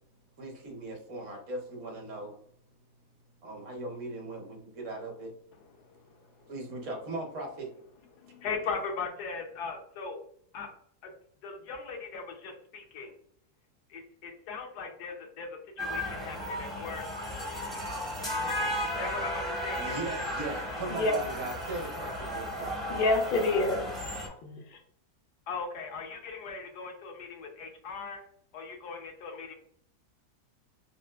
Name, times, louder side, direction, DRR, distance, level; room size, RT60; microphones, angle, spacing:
voice 1, 0.4-2.3 3.4-5.3 6.5-7.7 8.2-8.4 19.8-22.7, right 2 dB, 55° right, 0 dB, 1.0 m, -39 dB
voice 2, 5.5-6.5 7.1-7.2 7.6-10.2 10.5-10.7 11.0-11.1 11.4-13.1 13.9-17.1 18.6-20.1 25.5-28.2 28.5-29.5, left 4 dB, 80° left, 3 dB, 1.2 m, -39 dB
sound 1, 15.8-24.3, equal, ahead, 0.5 m, -34 dB
voice 3, 22.9-23.9 24.4-24.8, left 2 dB, 55° left, 3 dB, 0.6 m, -27 dB
3.6 x 2.4 x 2.3 m, 0.64 s
omnidirectional pair, 1.7 m